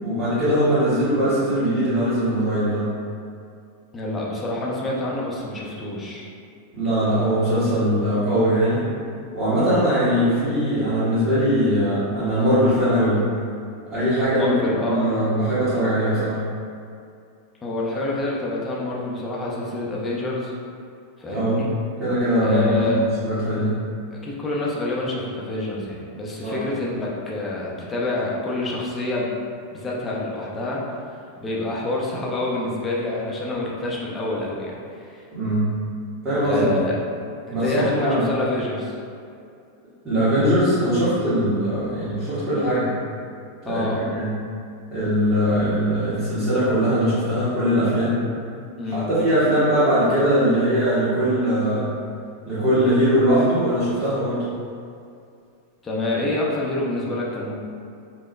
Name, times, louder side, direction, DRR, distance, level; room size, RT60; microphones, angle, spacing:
voice 1, 0.0-2.8 6.7-8.8 9.3-13.2 13.9-14.5 14.9-16.4 21.3-21.6 22.0-23.0 23.3-23.8 26.4-26.6 35.3-35.7 36.2-36.7 37.5-38.3 40.0-42.9 43.6-44.3 44.9-48.2 48.8-51.8 52.5-54.4, equal, 20° right, -16 dB, 1.4 m, -21 dB
voice 2, 3.9-6.3 14.3-15.2 17.6-20.5 21.2-21.7 22.4-23.0 24.1-29.3 29.7-30.8 31.1-35.3 36.4-37.0 37.5-39.0 43.7-44.0 48.8-49.1 55.8-57.5, left 2 dB, 15° left, -5 dB, 0.6 m, -27 dB
4.9 x 2.1 x 2.2 m, 2.4 s
figure-of-eight pair, 90°, 0 cm